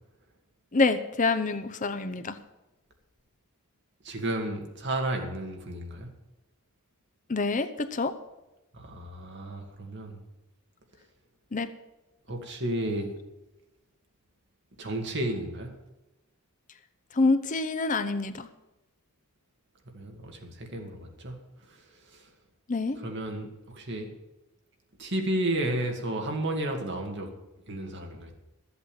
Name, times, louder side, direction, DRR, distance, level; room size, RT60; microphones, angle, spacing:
voice 1, 0.7-2.4 7.3-8.1 11.5-11.7 17.1-18.5 22.7-23.0, left 3 dB, 35° left, 10 dB, 0.7 m, -26 dB
voice 2, 4.0-6.1 8.7-10.2 12.3-13.2 14.8-15.7 19.9-21.3 21.6-22.3 23.0-24.1 25.0-27.3 27.7-28.3, right 1 dB, 50° right, 3 dB, 2.1 m, -32 dB
13.0 x 8.1 x 7.8 m, 1.0 s
head